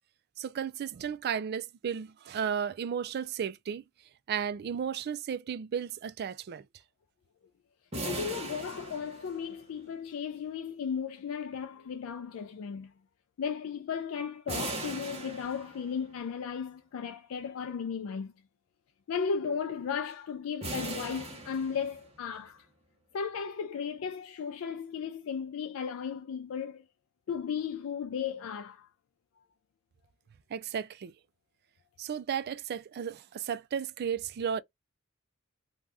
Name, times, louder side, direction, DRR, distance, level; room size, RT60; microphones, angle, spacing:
voice 1, 0.4-3.8 4.3-6.6 8.1-8.2 30.5-31.1 32.0-34.6, right 7 dB, 50° right, 0.3 m, -34 dB
sound 1, 7.9-9.8 14.5-16.1 20.6-22.3, right 2 dB, 30° right, 1.0 m, -39 dB
voice 2, 8.0-12.9 13.4-18.3 19.1-22.7 23.1-26.8 27.3-28.9, left 6 dB, 70° left, 0.4 m, -35 dB
2.6 x 2.3 x 3.3 m
head